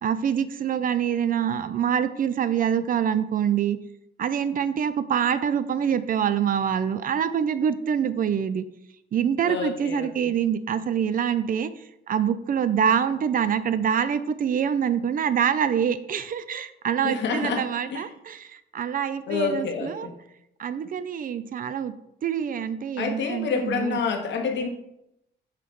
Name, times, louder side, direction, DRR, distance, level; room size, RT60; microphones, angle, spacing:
voice 1, 0.0-3.8 4.2-8.6 9.1-20.1 20.6-21.9 22.2-24.0, right 8 dB, 45° right, 13 dB, 0.4 m, -25 dB
voice 2, 9.4-10.4 17.0-18.1 19.3-20.2 23.0-24.7, left 5 dB, 65° left, 4 dB, 1.1 m, -28 dB
5.7 x 3.1 x 5.2 m, 0.81 s
cardioid pair, 90°, 20 cm